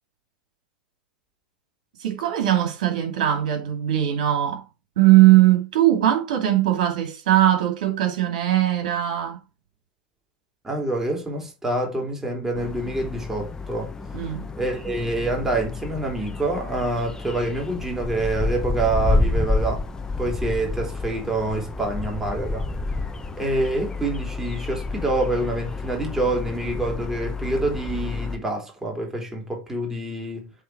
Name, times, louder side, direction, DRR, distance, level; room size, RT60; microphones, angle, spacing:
voice 1, 2.0-4.6 5.0-9.4 14.1-14.4, right 13 dB, 70° right, 2.5 m, -20 dB
voice 2, 10.6-13.9 14.6-19.8 20.2-22.6 23.4-30.5, right 2 dB, 10° right, 3.1 m, -26 dB
sound 1, 12.5-28.4, left 3 dB, 15° left, 0.9 m, -29 dB
7.9 x 3.7 x 4.7 m
hypercardioid pair, 95°, 4 cm